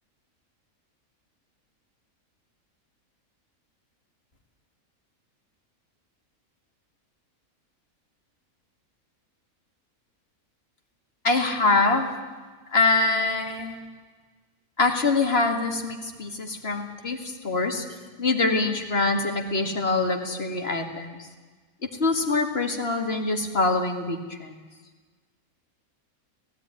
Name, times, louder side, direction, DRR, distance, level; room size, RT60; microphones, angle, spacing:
voice 1, 11.2-12.1 12.7-13.8 14.8-17.8 18.2-21.3 22.0-24.6, left 3 dB, 45° left, 3 dB, 2.2 m, -24 dB
17.0 x 16.0 x 9.8 m, 1.4 s
omnidirectional pair, 1.5 m